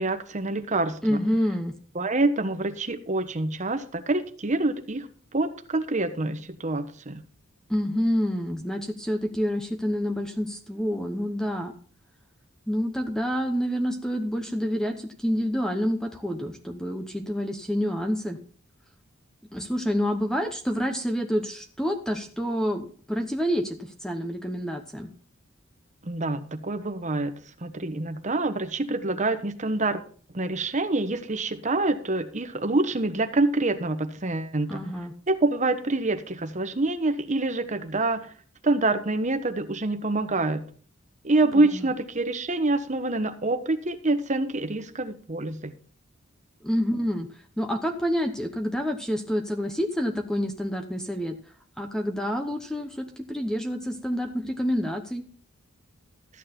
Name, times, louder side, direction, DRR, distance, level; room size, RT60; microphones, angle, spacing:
voice 1, 0.0-1.2 1.9-5.1 5.3-7.2 26.0-27.3 27.6-30.0 30.3-34.8 35.3-38.3 38.6-40.7 41.2-45.7, right 2 dB, 35° right, 9 dB, 1.1 m, -26 dB
voice 2, 1.0-1.8 7.7-11.7 12.7-18.4 19.5-25.1 34.7-35.1 41.5-41.8 46.6-47.3 47.6-51.4 51.8-55.3, equal, 5° left, 5 dB, 1.0 m, -28 dB
13.5 x 9.1 x 4.4 m, 0.44 s
head